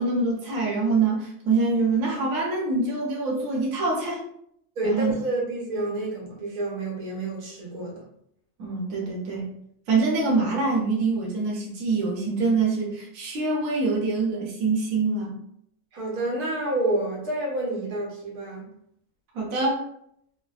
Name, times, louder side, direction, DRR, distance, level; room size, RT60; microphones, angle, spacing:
voice 1, 0.0-4.2 4.8-5.1 8.6-9.5 9.9-15.4 19.3-19.8, right 3 dB, 70° right, -3 dB, 1.1 m, -25 dB
voice 2, 4.8-8.0 15.9-18.7, right 1 dB, 85° right, -3 dB, 1.4 m, -29 dB
3.2 x 2.1 x 2.3 m, 0.72 s
omnidirectional pair, 1.6 m